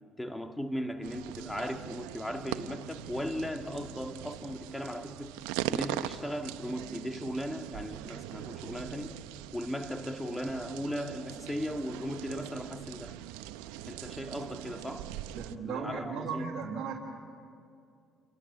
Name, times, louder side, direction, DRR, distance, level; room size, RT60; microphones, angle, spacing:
voice 1, 0.2-5.4 5.7-9.2 9.5-13.2 13.9-15.1 15.6-16.5, equal, 10° left, 1.9 m, -37 dB
sound 1, 1.0-15.6, right 13 dB, 85° right, 0.8 m, -41 dB
voice 2, 15.3-16.9, right 5 dB, 55° right, 3.5 m, -36 dB
29.0 x 23.5 x 7.4 m
supercardioid pair, 75°, 0 cm